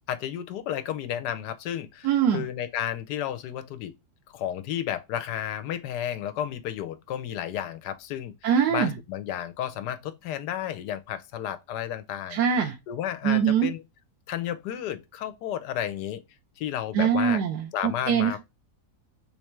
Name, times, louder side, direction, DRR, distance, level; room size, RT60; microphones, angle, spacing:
voice 1, 0.1-3.9 4.3-8.3 8.7-12.4 12.9-13.8 14.3-16.2 16.6-17.4 17.7-18.4, left 10 dB, 85° left, 1.2 m, -32 dB
voice 2, 2.0-2.5 8.4-9.0 12.3-12.7 13.2-13.7 16.9-18.4, right 8 dB, 90° right, 1.3 m, -23 dB
3.5 x 3.2 x 3.0 m
omnidirectional pair, 1.7 m